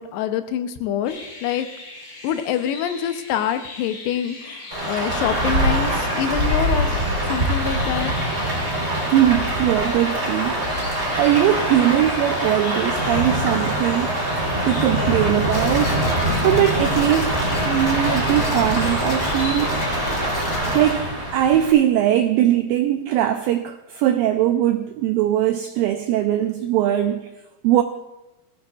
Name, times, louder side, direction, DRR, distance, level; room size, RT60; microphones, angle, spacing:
voice 1, 0.0-1.7 2.2-6.9 7.3-8.1, left 9 dB, 85° left, 9 dB, 2.8 m, -26 dB
sound 1, 1.1-20.3, left 2 dB, 40° left, 3.9 m, -39 dB
Rain, 4.7-21.7, right 1 dB, 15° right, 3.1 m, -23 dB
voice 2, 9.1-10.6 11.2-14.1 14.7-15.9 16.4-19.7 20.7-27.3 27.6-27.8, right 12 dB, 85° right, 7 dB, 2.0 m, -20 dB
sound 2, 15.5-20.9, left 1 dB, 15° left, 2.5 m, -30 dB
19.0 x 15.0 x 2.4 m, 1.0 s
omnidirectional pair, 4.7 m